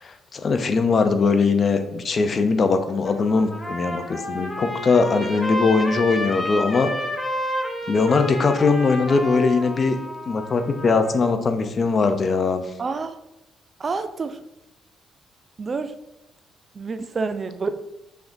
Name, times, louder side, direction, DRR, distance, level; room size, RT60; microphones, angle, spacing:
voice 1, 0.0-6.9 7.9-10.0 10.3-12.6, left 4 dB, 45° left, 8 dB, 0.5 m, -21 dB
Trumpet, 2.9-11.3, left 1 dB, 15° left, 0.9 m, -30 dB
voice 2, 12.8-13.2 13.8-14.4 15.6-15.9 16.7-17.7, right 4 dB, 40° right, 10 dB, 0.3 m, -28 dB
5.6 x 3.6 x 2.6 m, 0.91 s
cardioid pair, 90°, 0 cm